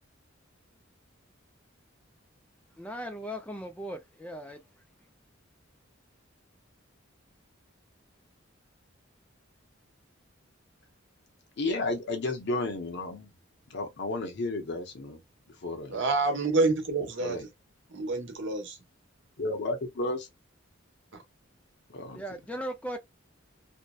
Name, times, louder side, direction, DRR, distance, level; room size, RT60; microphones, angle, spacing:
voice 1, 2.8-4.6 22.1-23.0, equal, 5° left, 0.3 m, -38 dB
voice 2, 11.6-13.3 13.7-15.2 15.6-16.0 17.2-17.4 19.4-20.3 21.9-22.2, left 2 dB, 60° left, 0.7 m, -32 dB
voice 3, 15.9-17.4 17.9-18.8 21.1-21.2, right 3 dB, 65° right, 0.9 m, -27 dB
2.7 x 2.1 x 2.2 m
head